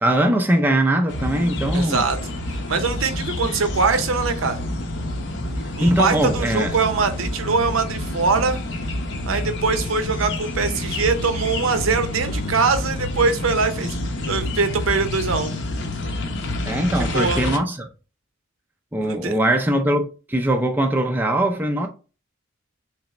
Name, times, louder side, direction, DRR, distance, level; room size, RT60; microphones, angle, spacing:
voice 1, 0.0-2.0 5.8-6.7 16.7-17.8 18.9-21.9, right 1 dB, 10° right, 0.4 m, -21 dB
sound 1, 1.1-17.6, left 1 dB, 55° left, 0.7 m, -28 dB
voice 2, 1.7-2.2 2.7-4.6 5.8-8.6 9.3-14.0 14.3-15.5 17.1-17.5 19.0-19.4, right 4 dB, 75° right, 0.7 m, -22 dB
3.9 x 3.3 x 3.1 m
head